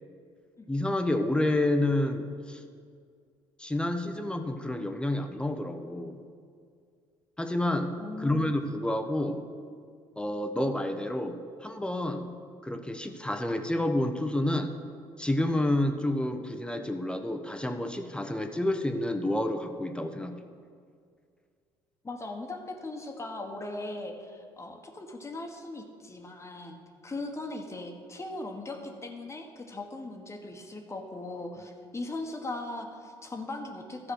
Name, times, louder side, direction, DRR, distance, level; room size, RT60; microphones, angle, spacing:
voice 1, 0.7-2.6 3.6-6.2 7.4-7.9 8.2-9.4 10.2-12.4 12.6-14.7 15.2-20.4, left 1 dB, 10° left, 6 dB, 0.9 m, -29 dB
voice 2, 8.0-8.5 22.0-34.1, left 2 dB, 25° left, 3 dB, 1.3 m, -39 dB
12.5 x 4.8 x 6.3 m, 2.2 s
hypercardioid pair, 65°, 12 cm